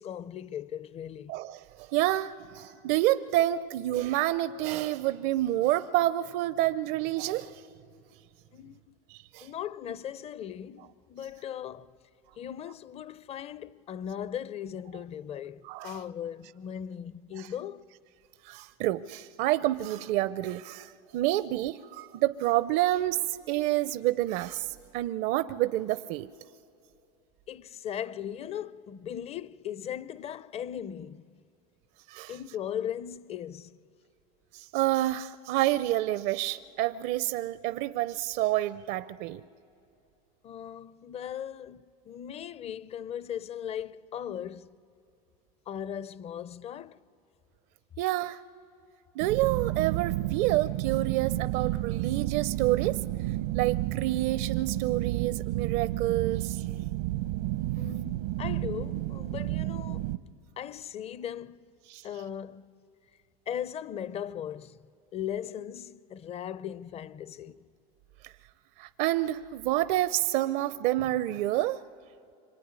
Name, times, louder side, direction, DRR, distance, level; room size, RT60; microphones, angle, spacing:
voice 1, 0.0-1.4 8.5-9.0 9.4-12.0 12.4-17.9 27.5-31.4 32.3-33.8 40.4-44.8 45.7-47.0 57.8-60.1 60.6-61.7 62.0-62.7 63.5-64.9 65.1-67.7, left 9 dB, 30° left, 0.6 m, -38 dB
voice 2, 1.3-7.6 9.1-9.5 15.7-16.0 17.4-17.5 18.4-26.3 32.1-32.4 34.5-39.4 48.0-48.4 49.2-53.3 53.5-56.6 61.9-62.0 68.2-68.3 68.8-71.8, right 15 dB, 60° right, 0.5 m, -28 dB
sound 1, 49.2-60.2, right 16 dB, 80° right, 0.9 m, -31 dB
25.5 x 24.0 x 9.6 m
supercardioid pair, 110°, 19 cm